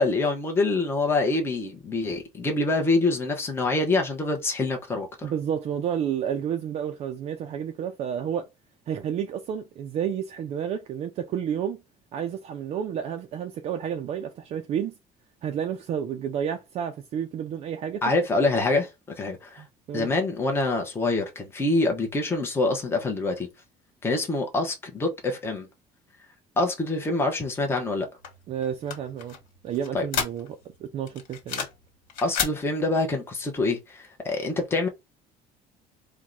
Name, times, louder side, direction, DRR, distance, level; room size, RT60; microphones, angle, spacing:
voice 1, 0.0-5.3 18.0-18.9 19.2-19.6 19.9-23.5 24.0-25.7 26.6-28.1 29.9-30.1 32.2-34.9, left 2 dB, 15° left, 0.9 m, -25 dB
voice 2, 5.2-8.5 8.9-11.8 12.1-14.9 15.4-18.0 19.6-20.1 28.5-29.4 29.6-31.7, right 8 dB, 45° right, 0.4 m, -30 dB
sound 1, 28.2-30.7 31.1-31.8 32.1-32.6, left 7 dB, 60° left, 1.5 m, -31 dB
4.6 x 2.2 x 3.8 m
cardioid pair, 160°, 15 cm